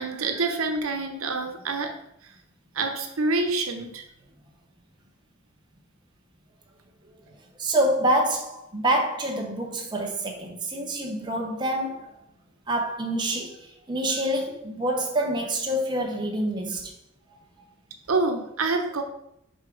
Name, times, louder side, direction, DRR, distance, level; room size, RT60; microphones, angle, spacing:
voice 1, 0.0-1.9 2.7-4.0 18.1-19.0, right 3 dB, 90° right, 0.9 m, -27 dB
voice 2, 7.6-12.2 12.7-16.9, right 1 dB, 20° right, 0.9 m, -26 dB
6.5 x 4.6 x 3.8 m
head